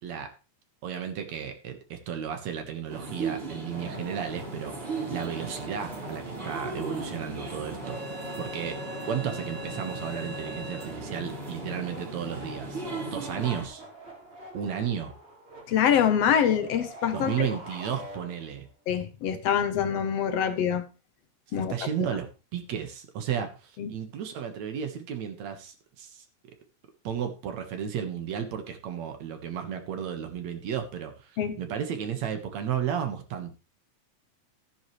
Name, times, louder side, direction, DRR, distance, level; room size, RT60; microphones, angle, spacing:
voice 1, 0.8-8.0 8.4-8.8 9.1-12.8 13.1-13.8 14.5-15.1 17.1-18.7 21.7-26.3 27.0-33.5, right 8 dB, 65° right, 6 dB, 2.6 m, -33 dB
sound 1, 2.9-13.7, right 3 dB, 45° right, 4.4 m, -37 dB
sound 2, 3.7-18.7, right 1 dB, 20° right, 2.4 m, -46 dB
voice 2, 15.7-17.3 18.9-20.8 21.5-21.7 23.8-23.9 31.4-31.6, left 8 dB, 65° left, 10 dB, 1.9 m, -25 dB
14.0 x 9.9 x 3.2 m, 0.30 s
omnidirectional pair, 3.5 m